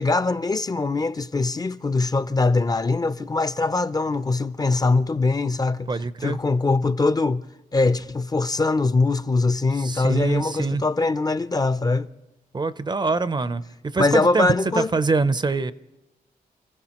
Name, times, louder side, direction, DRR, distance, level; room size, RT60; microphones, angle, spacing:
voice 1, 0.0-5.9 6.2-7.4 7.7-12.1 14.0-14.9, left 3 dB, 25° left, 0.5 m, -22 dB
voice 2, 5.9-6.4 9.8-10.8 12.5-13.6 13.9-14.5 14.8-15.7, right 3 dB, 30° right, 0.5 m, -24 dB
29.0 x 15.5 x 2.9 m
cardioid pair, 100°, 16 cm